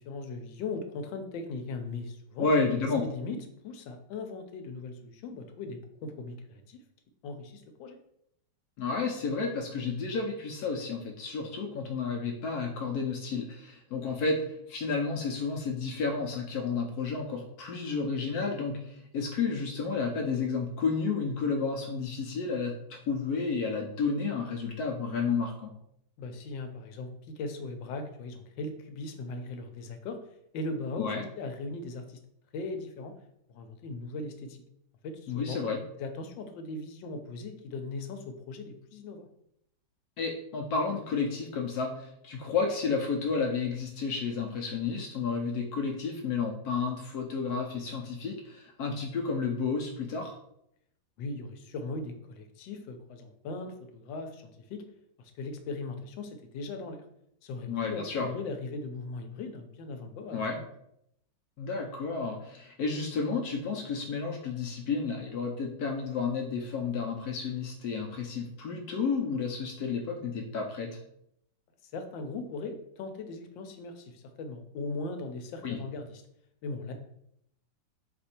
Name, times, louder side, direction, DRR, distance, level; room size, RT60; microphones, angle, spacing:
voice 1, 0.0-2.5 3.0-3.4 3.6-6.8 7.2-8.0 26.2-30.2 30.5-32.2 32.5-33.1 33.5-34.6 35.0-35.6 36.0-39.3 51.2-54.8 55.2-57.0 57.4-60.7 71.8-76.2 76.6-76.9, left 3 dB, 90° left, 7 dB, 1.4 m, -39 dB
voice 2, 2.4-3.0 8.8-25.7 31.0-31.2 35.3-35.8 40.2-50.4 57.7-58.3 60.3-60.6 61.6-70.9 75.6-75.8, left 4 dB, 70° left, 1 dB, 1.0 m, -31 dB
4.3 x 2.6 x 4.2 m, 0.75 s
omnidirectional pair, 2.0 m